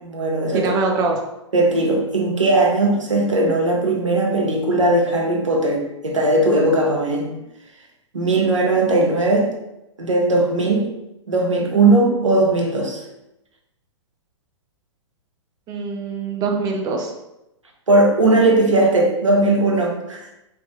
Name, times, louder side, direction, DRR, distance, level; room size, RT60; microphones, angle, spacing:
voice 1, 0.0-0.7 1.5-7.4 8.1-9.5 10.0-10.9 11.3-13.0 17.9-20.3, right 2 dB, 90° right, 0 dB, 0.6 m, -18 dB
voice 2, 0.5-1.2 15.7-17.1, right 4 dB, 25° right, 1 dB, 0.4 m, -23 dB
2.6 x 2.3 x 2.4 m, 0.90 s
figure-of-eight pair, 115°, 16 cm